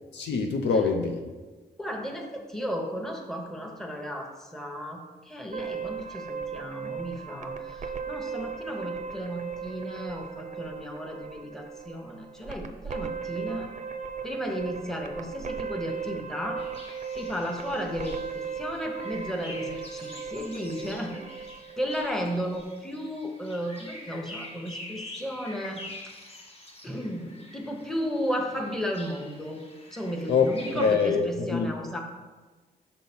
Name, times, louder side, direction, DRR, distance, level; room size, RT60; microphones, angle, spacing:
voice 1, 0.1-1.2 30.3-30.5 30.7-31.7, left 5 dB, 85° left, 3 dB, 0.5 m, -24 dB
voice 2, 1.8-13.7 14.2-16.6 17.1-21.4 21.8-25.8 26.8-29.6 29.9-32.0, equal, ahead, 1 dB, 0.9 m, -34 dB
sound 1, 5.5-22.6, right 6 dB, 45° right, 0.5 m, -37 dB
sound 2, 16.6-30.9, left 2 dB, 35° left, 1.0 m, -46 dB
5.5 x 4.1 x 4.3 m, 1.3 s
cardioid pair, 65°, 18 cm